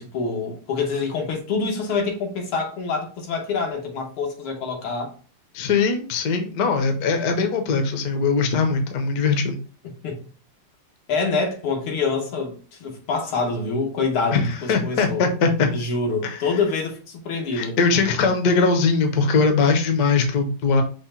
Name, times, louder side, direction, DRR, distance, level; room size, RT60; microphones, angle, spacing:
voice 1, 0.0-5.1 10.0-10.2 11.1-15.2 15.7-17.8, left 4 dB, 85° left, 2.0 m, -26 dB
voice 2, 5.5-9.6 14.3-15.7 16.2-16.4 17.5-20.8, left 4 dB, 60° left, 1.1 m, -21 dB
5.5 x 2.1 x 4.3 m
omnidirectional pair, 2.3 m